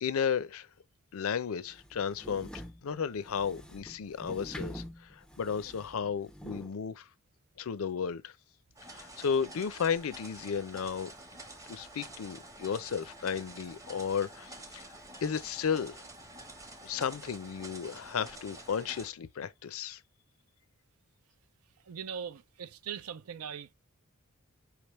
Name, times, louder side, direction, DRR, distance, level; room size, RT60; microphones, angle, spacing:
voice 1, 0.0-0.7 1.1-2.5 2.8-7.1 7.6-8.3 8.9-11.1 11.7-14.9 15.2-16.0 16.8-20.0, left 6 dB, 70° left, 0.5 m, -34 dB
sound 1, 1.7-6.7, equal, 5° left, 0.4 m, -46 dB
sound 2, 8.8-19.1, right 1 dB, 15° right, 0.8 m, -49 dB
voice 2, 21.8-23.7, right 7 dB, 85° right, 0.5 m, -40 dB
4.8 x 3.4 x 3.0 m
head